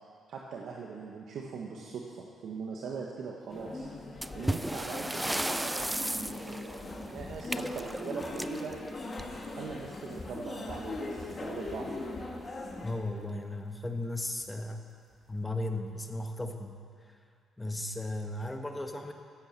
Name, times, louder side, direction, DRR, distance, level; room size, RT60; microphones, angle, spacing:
voice 1, 0.3-3.9 4.3-8.7 9.5-11.9, right 5 dB, 70° right, -1 dB, 1.3 m, -41 dB
sound 1, 3.5-12.9, left 2 dB, 30° left, 1.9 m, -40 dB
sound 2, 4.2-9.6 10.8-11.0 11.3-11.4 12.1-12.2 12.8-13.1, right 1 dB, 10° right, 0.4 m, -35 dB
voice 2, 12.8-14.8 15.3-16.8 17.6-19.1, left 1 dB, 15° left, 5 dB, 1.3 m, -35 dB
15.0 x 9.1 x 6.7 m, 2.2 s
cardioid pair, 90°, 0 cm